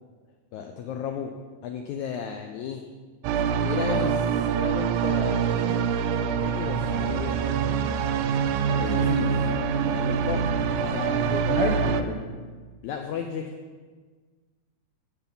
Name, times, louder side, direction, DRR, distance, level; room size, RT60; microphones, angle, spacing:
voice 1, 0.5-1.3 1.6-2.9 3.6-5.9 6.2-7.4 8.8-9.5 9.9-11.7 12.8-13.5, left 7 dB, 85° left, 4 dB, 1.6 m, -34 dB
sound 1, 3.2-12.0, right 7 dB, 85° right, 1.8 m, -25 dB
voice 2, 8.7-9.3 10.9-12.2, left 1 dB, 65° left, -3 dB, 1.4 m, -30 dB
14.5 x 7.1 x 4.0 m, 1.4 s
omnidirectional pair, 4.1 m